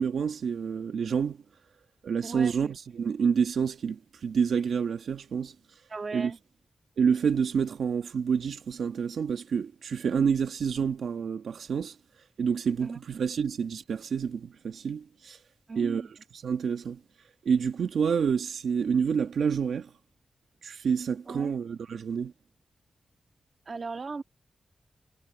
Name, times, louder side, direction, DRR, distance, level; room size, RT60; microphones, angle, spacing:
voice 1, 0.0-1.4 2.0-5.5 6.1-6.3 7.0-11.9 12.4-15.4 15.7-16.0 16.4-17.0 17.4-19.9 20.6-22.3, right 6 dB, 85° right, 1.5 m, -28 dB
voice 2, 2.2-2.7 5.9-6.4 12.8-13.0 15.7-16.1 21.3-21.5 23.6-24.2, right 4 dB, 45° right, 1.6 m, -37 dB
wide cardioid pair, 100°, 0 cm